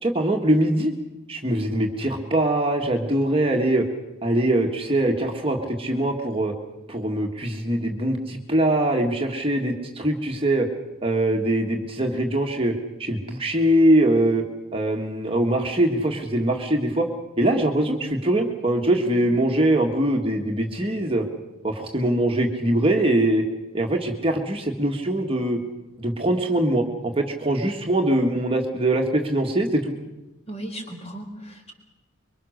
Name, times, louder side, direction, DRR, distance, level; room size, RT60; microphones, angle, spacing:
voice 1, 0.0-0.9 1.3-3.8 4.2-6.5 6.9-10.7 11.0-12.7 13.0-14.4 14.7-17.0 17.4-21.2 21.6-23.4 23.7-25.6 26.0-29.9, right 1 dB, 25° right, 1 dB, 1.7 m, -22 dB
voice 2, 30.5-31.7, right 1 dB, 30° left, 3 dB, 4.3 m, -37 dB
25.5 x 23.5 x 6.5 m, 1.0 s
head